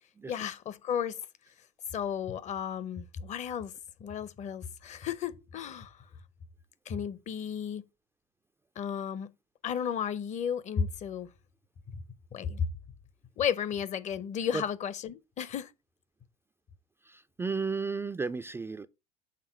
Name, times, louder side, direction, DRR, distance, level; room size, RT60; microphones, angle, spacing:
voice 1, 0.3-1.2 1.9-3.7 4.0-6.1 6.9-7.9 8.8-9.3 9.6-11.3 11.9-12.0 12.3-12.7 13.4-15.7, left 8 dB, 40° left, 0.7 m, -33 dB
voice 2, 17.1-18.9, right 4 dB, 15° right, 0.3 m, -33 dB
6.7 x 3.5 x 5.0 m
hypercardioid pair, 75°, 18 cm